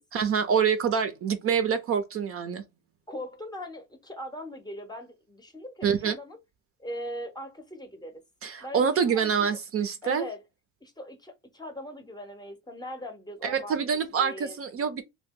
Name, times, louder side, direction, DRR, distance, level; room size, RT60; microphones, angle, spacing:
voice 1, 0.1-2.6 5.8-6.2 8.4-10.3 13.4-15.0, right 7 dB, 45° right, 0.5 m, -26 dB
voice 2, 3.1-6.4 6.8-8.2 8.6-9.6 10.0-10.4 10.8-13.8 14.2-14.6, left 1 dB, 15° left, 0.7 m, -40 dB
2.8 x 2.2 x 3.5 m
cardioid pair, 115°, 32 cm